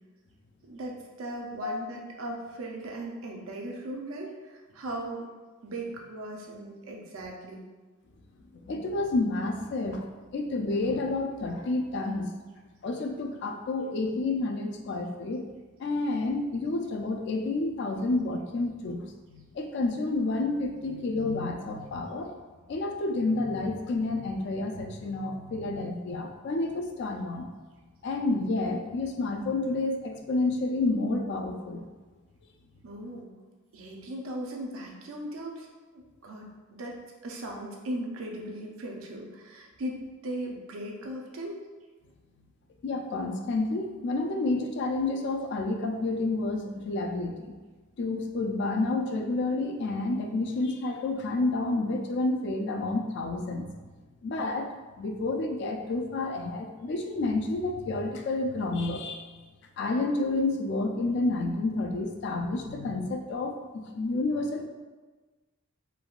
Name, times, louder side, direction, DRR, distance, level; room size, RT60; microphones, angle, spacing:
voice 1, 0.7-5.3 5.6-7.6 32.8-33.3 33.7-41.6, right 1 dB, 75° right, 0 dB, 0.5 m, -38 dB
voice 2, 8.7-10.1 10.3-12.3 12.8-15.4 15.8-19.0 19.3-22.3 22.7-27.5 28.0-31.8 42.8-47.5 48.0-53.7 54.2-54.7 55.0-59.3 59.8-64.7, left 2 dB, 55° left, 4 dB, 0.3 m, -29 dB
3.3 x 2.2 x 2.4 m, 1.3 s
head